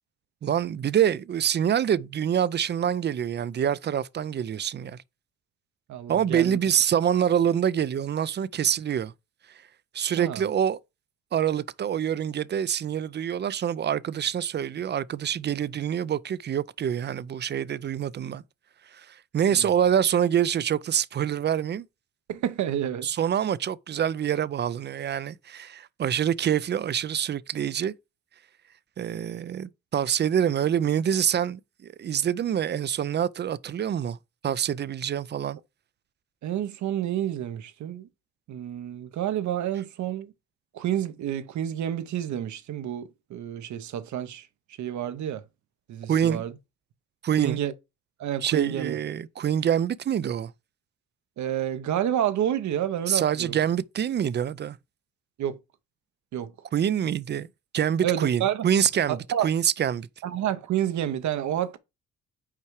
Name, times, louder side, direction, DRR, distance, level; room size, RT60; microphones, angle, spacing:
voice 1, 0.4-5.0 6.1-9.1 9.9-10.8 11.3-18.4 18.9-21.8 23.0-27.9 29.0-34.2 34.4-35.6 46.1-46.4 47.2-47.6 48.4-50.5 53.1-54.8 56.7-57.5 57.7-60.1, right 9 dB, 35° right, 0.4 m, -26 dB
voice 2, 5.9-6.6 10.2-10.4 19.5-19.7 22.3-23.1 36.4-38.1 38.5-40.3 40.7-44.5 44.8-45.4 45.9-46.5 47.4-47.7 48.2-49.0 51.4-53.5 55.4-55.6 56.3-56.5 58.0-58.7 59.1-59.5 60.2-61.8, right 11 dB, 70° right, 0.9 m, -29 dB
5.7 x 4.6 x 4.7 m
cardioid pair, 90°, 30 cm